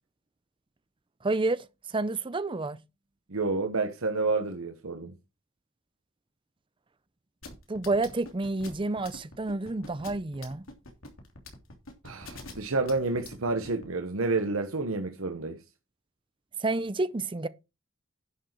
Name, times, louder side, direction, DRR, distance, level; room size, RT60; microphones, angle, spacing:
voice 1, 1.2-2.8 7.7-10.6 16.6-17.5, right 2 dB, 25° right, 0.6 m, -29 dB
voice 2, 3.3-5.1 12.0-15.6, right 3 dB, 85° right, 1.2 m, -29 dB
sound 1, 7.4-13.9, left 3 dB, 75° left, 3.1 m, -44 dB
11.0 x 6.5 x 4.5 m
head